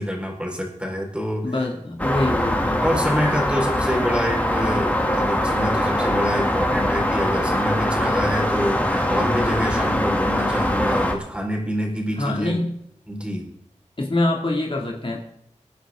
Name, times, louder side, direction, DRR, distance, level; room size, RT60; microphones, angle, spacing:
voice 1, 0.0-1.6 2.8-12.5 13.1-13.5, equal, 10° right, -1 dB, 4.7 m, -26 dB
voice 2, 1.4-2.8 12.2-12.7 14.0-15.2, left 2 dB, 45° left, -1 dB, 2.5 m, -24 dB
sound 1, 2.0-11.1, left 1 dB, 10° left, 2.6 m, -22 dB
23.5 x 10.0 x 3.8 m, 0.75 s
wide cardioid pair, 60°, 13 cm